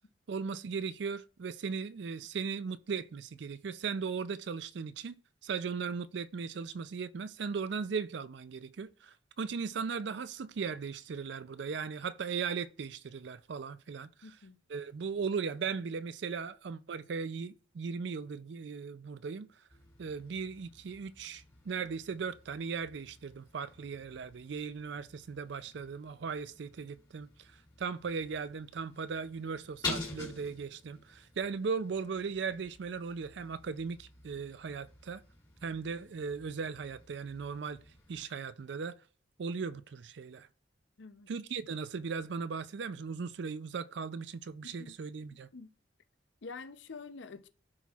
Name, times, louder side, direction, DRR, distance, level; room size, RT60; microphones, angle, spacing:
voice 1, 0.3-14.1 14.7-19.5 20.0-27.5 27.8-35.2 35.6-37.8 38.1-38.9 39.4-40.5 41.3-45.5, right 5 dB, 60° right, 0.4 m, -38 dB
voice 2, 14.2-14.6 41.0-41.3 44.6-45.0 45.3-45.7 46.4-47.5, left 4 dB, 70° left, 0.6 m, -47 dB
sound 1, 19.7-38.3, left 3 dB, 20° left, 1.7 m, -48 dB
13.0 x 4.3 x 2.4 m
head